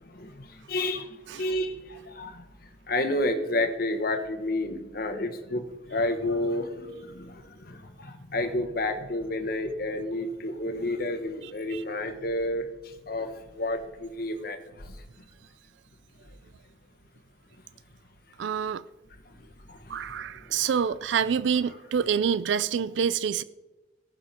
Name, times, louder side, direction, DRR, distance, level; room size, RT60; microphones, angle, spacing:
voice 1, 0.0-15.2 19.4-20.2 20.5-20.7, left 1 dB, 55° left, 1.3 m, -31 dB
voice 2, 18.4-18.8 19.9-23.4, right 7 dB, 80° right, 0.4 m, -27 dB
18.5 x 6.8 x 4.3 m
head